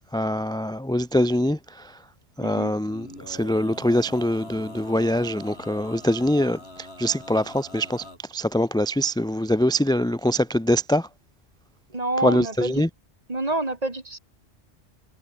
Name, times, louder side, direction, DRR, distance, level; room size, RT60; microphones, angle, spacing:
voice 1, 0.1-2.0 2.4-11.1 12.2-12.9, equal, 5° left, 0.7 m, -24 dB
voice 2, 2.4-2.7 11.9-12.8 13.3-14.2, right 2 dB, 35° right, 2.7 m, -28 dB
Male singing, 2.8-8.2, left 1 dB, 65° left, 6.4 m, -43 dB
omnidirectional pair, 1.2 m